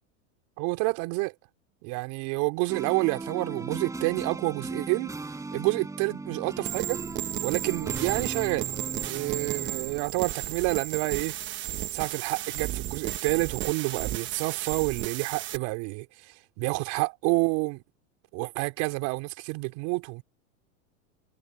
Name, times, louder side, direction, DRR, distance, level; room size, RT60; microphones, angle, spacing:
voice 1, 0.6-1.3 1.8-5.1 5.5-7.0 7.4-8.7 9.1-11.3 11.9-16.1 16.6-17.8 18.3-20.2, right 27 dB, 50° right, 4.4 m, -28 dB
sound 1, 2.7-10.1, right 3 dB, 10° right, 5.1 m, -38 dB
sound 2, 6.6-15.6, right 13 dB, 30° right, 1.1 m, -34 dB
supercardioid pair, 145°, 39 cm